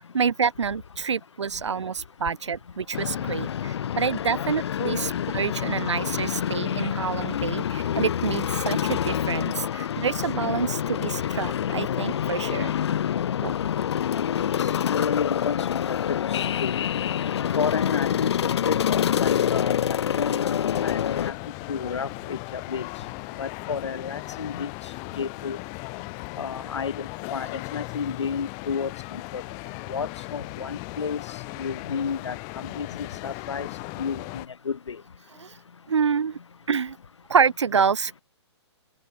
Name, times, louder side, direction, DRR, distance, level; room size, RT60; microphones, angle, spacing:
voice 1, 0.0-12.7 13.4-13.5 35.4-35.6 35.9-36.4 36.7-37.0 37.3-38.2, right 6 dB, 90° right, 1.8 m, -27 dB
sound 1, 2.9-21.3, left 9 dB, 70° left, 0.4 m, -26 dB
voice 2, 14.1-14.5 14.8-16.8 17.5-19.8 20.1-21.3 21.7-22.9 23.4-24.7 25.1-25.6 26.4-29.4 29.9-31.2 31.6-32.3 32.8-33.7 34.0-35.0, left 6 dB, 85° left, 2.9 m, -31 dB
sound 2, 20.7-34.5, left 37 dB, 20° left, 0.8 m, -37 dB
open air
hypercardioid pair, 160°, 15 cm